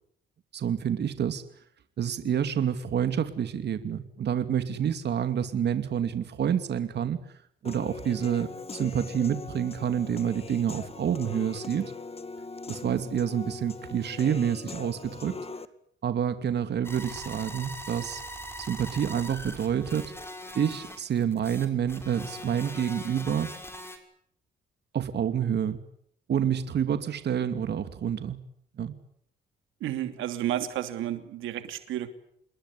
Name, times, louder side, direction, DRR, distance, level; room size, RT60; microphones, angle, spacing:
voice 1, 0.5-1.4 2.0-7.2 7.6-11.9 12.7-15.4 16.0-18.2 18.6-20.1 20.5-23.5 24.9-25.8 26.3-28.4 28.8-29.0, right 8 dB, 60° right, 9 dB, 2.6 m, -28 dB
Human voice / Piano, 7.6-15.7, left 4 dB, 30° left, 2.1 m, -41 dB
sound 1, 16.8-24.0, equal, 10° left, 6.4 m, -41 dB
voice 2, 29.8-32.1, right 12 dB, 85° right, 9 dB, 2.9 m, -31 dB
28.5 x 21.0 x 9.9 m, 0.69 s
cardioid pair, 90°, 20 cm